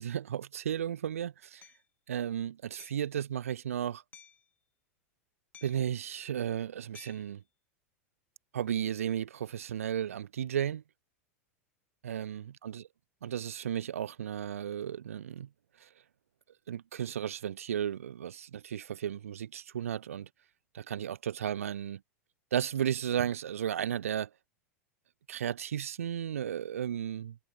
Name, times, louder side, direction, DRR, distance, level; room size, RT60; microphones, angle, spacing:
voice 1, 0.0-1.6 2.1-4.0 5.6-7.4 8.5-10.8 12.0-12.8 13.2-15.5 15.8-15.9 16.7-20.3 20.7-22.0 22.5-24.3 25.3-27.4, right 9 dB, 70° right, 0.5 m, -34 dB
Hammer, 1.6-1.8 2.8-3.1 4.1-4.5 5.5-6.0 6.9-7.3, left 7 dB, 20° left, 1.6 m, -55 dB
figure-of-eight pair, 85°, 8 cm